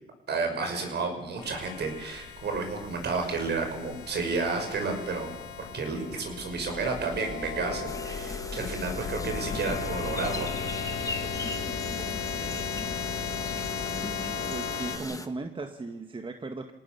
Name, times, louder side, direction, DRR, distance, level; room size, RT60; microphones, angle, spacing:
voice 1, 0.3-5.3 5.7-10.5, right 4 dB, 55° right, 5 dB, 6.4 m, -31 dB
sound 1, 1.4-15.0, left 6 dB, 75° left, 5.3 m, -36 dB
sound 2, 7.9-15.3, left 2 dB, 15° left, 1.7 m, -38 dB
voice 2, 14.5-16.7, right 3 dB, 25° right, 6 dB, 1.7 m, -37 dB
27.0 x 18.0 x 7.0 m, 1.1 s
cardioid pair, 90°, 20 cm